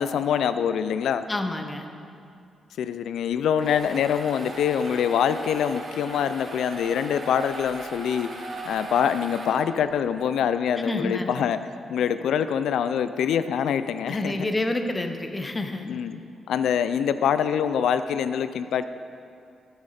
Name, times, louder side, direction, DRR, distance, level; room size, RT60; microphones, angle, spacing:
voice 1, 0.0-1.2 2.8-11.6 11.9-14.5 15.8-16.2 16.5-18.9, left 8 dB, 90° left, 11 dB, 0.3 m, -25 dB
voice 2, 1.3-1.9 10.9-11.5 14.1-15.8, left 2 dB, 15° left, 6 dB, 0.6 m, -28 dB
sound 1, 3.3-10.0, right 2 dB, 35° right, 0.9 m, -39 dB
9.7 x 8.7 x 4.2 m, 2.5 s
wide cardioid pair, 150°, 0 cm